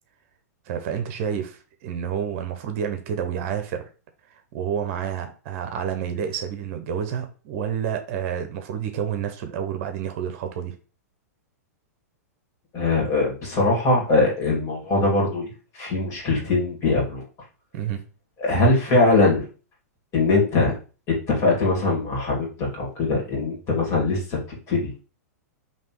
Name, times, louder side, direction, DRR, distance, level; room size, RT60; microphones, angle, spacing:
voice 1, 0.7-3.9 4.5-10.7 17.7-18.0, right 8 dB, 50° right, 7 dB, 0.8 m, -29 dB
voice 2, 12.7-15.5 15.7-17.2 18.4-19.4 20.1-20.7 21.3-24.4 24.7-24.9, left 2 dB, 35° left, -2 dB, 2.1 m, -21 dB
3.4 x 2.9 x 4.5 m, 0.35 s
hypercardioid pair, 120°, 9 cm